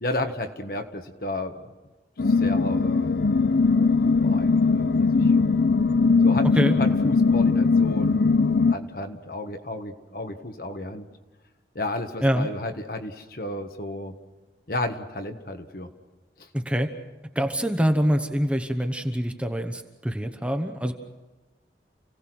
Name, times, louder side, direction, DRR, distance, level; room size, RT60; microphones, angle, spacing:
voice 1, 0.0-1.5 2.3-3.1 4.0-5.3 6.2-6.5 6.8-8.3 8.7-11.0 11.7-14.1 14.7-15.9 16.4-16.5, left 2 dB, 55° left, 6 dB, 1.4 m, -32 dB
sound 1, 2.2-8.7, left 4 dB, 70° left, 0.6 m, -20 dB
voice 2, 16.5-16.9 17.3-20.9, equal, 5° right, 6 dB, 1.0 m, -25 dB
29.5 x 17.5 x 6.2 m, 1.2 s
head